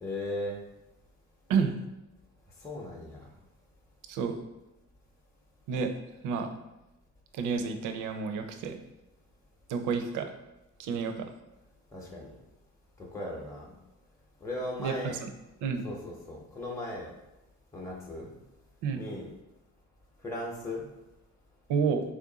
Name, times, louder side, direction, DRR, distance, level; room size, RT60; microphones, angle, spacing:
voice 1, 0.0-0.6 2.6-3.3 11.9-12.3 13.0-13.7 14.4-15.2 15.8-17.1 17.7-18.3 19.0-19.3 20.2-20.9, left 1 dB, 10° left, -3 dB, 0.6 m, -37 dB
voice 2, 7.3-8.7 9.7-10.3 10.8-11.3 14.8-15.3 15.6-15.9 18.8-19.0 21.7-22.0, right 5 dB, 85° right, 6 dB, 0.5 m, -29 dB
3.3 x 2.5 x 3.8 m, 0.97 s
cardioid pair, 90°, 30 cm